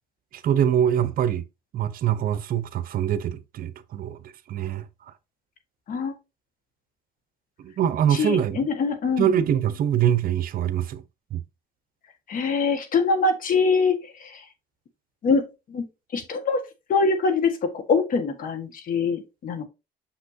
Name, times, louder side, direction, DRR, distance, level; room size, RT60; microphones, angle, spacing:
voice 1, 0.3-1.4 1.7-4.2 4.5-4.9 7.6-8.6 9.2-11.0 11.3-11.4, right 10 dB, 60° right, 0.8 m, -23 dB
voice 2, 8.1-9.3 12.3-14.4 15.2-15.8 16.1-16.6 16.9-19.7, left 4 dB, 55° left, 1.6 m, -24 dB
6.6 x 5.9 x 2.8 m
cardioid pair, 110°, 17 cm